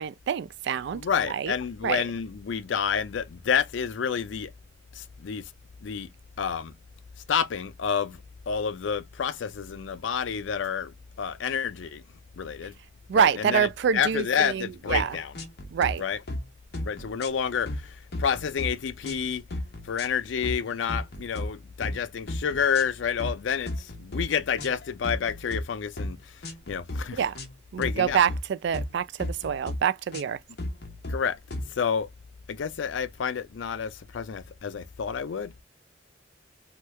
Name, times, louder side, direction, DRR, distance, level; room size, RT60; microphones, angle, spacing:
voice 1, 0.0-1.0 1.3-1.5 1.8-2.0 13.1-15.2 15.7-16.0 27.1-27.3 27.7-30.4, right 7 dB, 65° right, 0.3 m, -26 dB
voice 2, 0.9-4.5 5.0-5.4 5.8-6.1 6.4-6.7 7.3-8.2 8.5-10.9 11.2-12.0 12.4-12.7 13.1-15.3 16.0-16.2 16.8-17.9 18.2-19.4 19.9-26.2 26.7-27.2 27.8-28.2 31.1-31.4 31.8-32.1 32.5-35.5, left 7 dB, 80° left, 0.4 m, -29 dB
sound 1, 14.9-15.1 15.4-15.9 16.3-16.5 16.7-17.8 18.1-18.7 19.0-19.2 19.5-20.1 20.4-20.6 20.9-21.5 21.8-22.0 22.3-22.8 23.2-23.4 23.7-24.2 24.6-25.6 26.0-26.2 26.4-27.0 27.4-27.5 27.8-28.4 28.7-28.9 29.2-29.8 30.1-30.3 30.6-31.2 31.5-31.7, left 1 dB, 60° left, 0.9 m, -34 dB
2.9 x 2.3 x 3.1 m
head